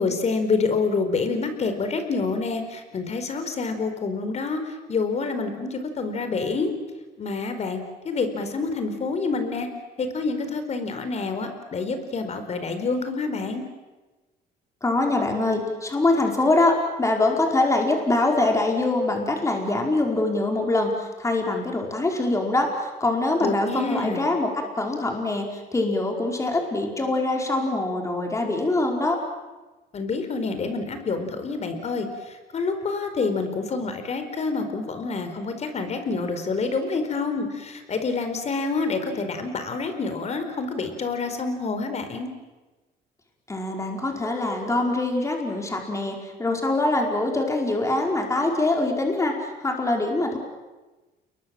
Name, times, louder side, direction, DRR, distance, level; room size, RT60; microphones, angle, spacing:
voice 1, 0.0-4.6 4.9-6.7 7.2-7.8 8.0-9.7 10.0-13.6 23.4-24.2 29.9-42.3, left 4 dB, 40° left, 8 dB, 4.5 m, -27 dB
voice 2, 14.8-29.2 43.5-49.3 49.6-50.4, left 2 dB, 15° left, 1 dB, 4.8 m, -24 dB
29.5 x 22.0 x 7.8 m, 1.2 s
cardioid pair, 110°, 17 cm